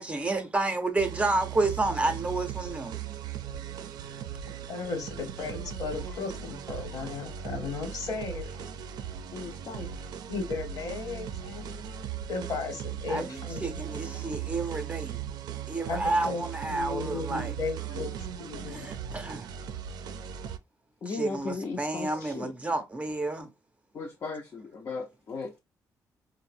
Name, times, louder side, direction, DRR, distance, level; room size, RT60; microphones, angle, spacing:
voice 1, 0.0-3.0 13.1-15.2 15.7-17.5 18.7-19.5 21.1-23.5, right 2 dB, 20° right, 0.6 m, -30 dB
sound 1, 1.0-20.6, right 9 dB, 85° right, 0.4 m, -38 dB
voice 2, 4.7-8.7 10.3-11.7 12.3-14.0 15.8-18.9, left 4 dB, 65° left, 1.1 m, -35 dB
voice 3, 9.3-9.9 14.0-14.5 17.3-17.5 17.9-18.0 21.0-22.5 23.9-25.6, left 4 dB, 45° left, 0.5 m, -37 dB
3.9 x 2.0 x 2.5 m
cardioid pair, 115°, 7 cm